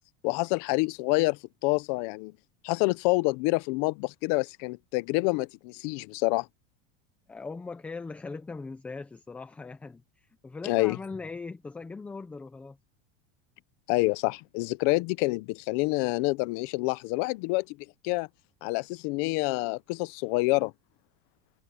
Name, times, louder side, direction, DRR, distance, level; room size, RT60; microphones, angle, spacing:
voice 1, 0.2-2.3 2.6-6.5 10.6-11.0 13.9-17.8 18.0-18.3 18.6-20.7, left 24 dB, 45° left, 0.7 m, -27 dB
voice 2, 7.3-12.8, left 4 dB, 5° left, 0.4 m, -40 dB
supercardioid pair, 175°, 29 cm